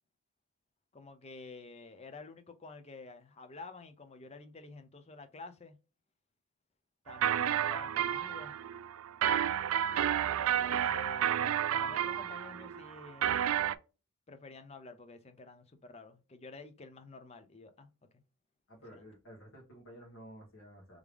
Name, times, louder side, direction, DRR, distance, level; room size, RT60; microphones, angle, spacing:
voice 1, 0.9-5.8 7.1-8.5 10.3-13.3 14.3-17.9 18.9-19.0, left 3 dB, 30° left, 0.5 m, -50 dB
sound 1, 7.1-13.7, right 10 dB, 70° right, 0.3 m, -31 dB
voice 2, 18.7-21.0, equal, 60° left, 1.7 m, -52 dB
3.5 x 3.4 x 3.4 m
head